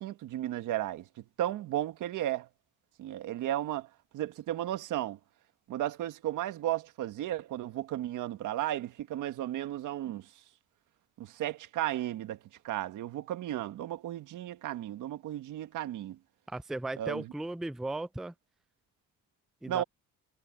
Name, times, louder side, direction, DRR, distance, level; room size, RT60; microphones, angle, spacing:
voice 1, 0.0-2.5 3.0-5.2 5.7-10.3 11.2-12.4 12.6-16.2 17.0-17.3 19.7-19.8, right 13 dB, 85° right, 1.7 m, -34 dB
voice 2, 16.5-18.3 19.6-19.8, right 2 dB, ahead, 0.4 m, -36 dB
cardioid pair, 90°, 30 cm